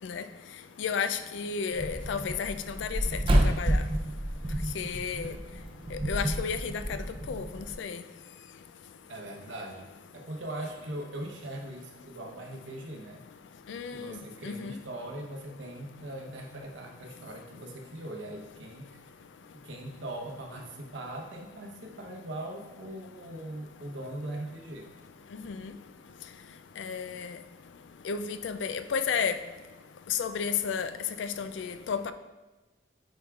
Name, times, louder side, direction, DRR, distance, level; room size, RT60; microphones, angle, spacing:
voice 1, 0.8-3.0 3.4-3.8 4.8-5.3 5.9-6.8 7.3-8.0 13.7-14.7 25.4-25.7 26.8-27.3 28.1-29.4 30.1-30.9 31.2-32.1, left 6 dB, 80° left, 11 dB, 0.4 m, -32 dB
sound 1, 1.7-7.7, right 1 dB, 25° right, 0.5 m, -30 dB
voice 2, 4.9-5.3 9.1-13.2 13.9-19.1 19.5-24.9, right 1 dB, 85° right, 1 dB, 0.9 m, -41 dB
9.1 x 4.7 x 2.4 m, 1.1 s
head